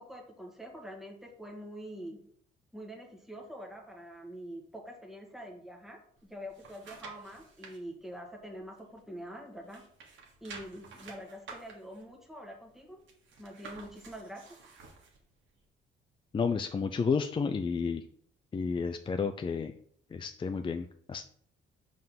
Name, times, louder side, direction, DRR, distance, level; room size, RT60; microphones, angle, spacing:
voice 1, 0.0-2.2 2.7-6.0 6.3-9.8 10.4-13.0 13.4-14.4, equal, ahead, 0 dB, 1.5 m, -45 dB
sound 1, 6.2-7.8 8.3-9.4 9.6-15.2 15.6-15.7, right 4 dB, 70° right, 1.6 m, -51 dB
voice 2, 16.3-18.0 18.5-19.7 20.1-21.2, left 5 dB, 25° left, 8 dB, 0.4 m, -31 dB
5.5 x 3.7 x 5.8 m, 0.62 s
cardioid pair, 90°, 20 cm